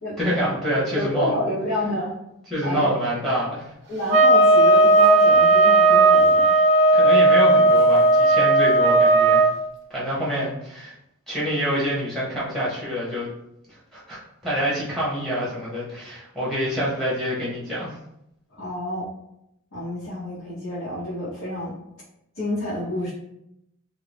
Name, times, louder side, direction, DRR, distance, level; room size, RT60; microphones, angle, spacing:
voice 1, 0.2-1.5 2.5-3.7 6.9-9.5 9.9-10.9 11.3-13.3 13.7-17.9, equal, ahead, -7 dB, 0.8 m, -26 dB
voice 2, 0.9-2.1 2.6-2.9 3.9-6.5 18.5-19.1 19.7-21.7 22.3-23.1, left 1 dB, 80° left, -11 dB, 1.0 m, -28 dB
sound 1, 4.1-9.5, right 2 dB, 50° right, 0.5 m, -15 dB
2.5 x 2.1 x 3.3 m, 0.81 s
head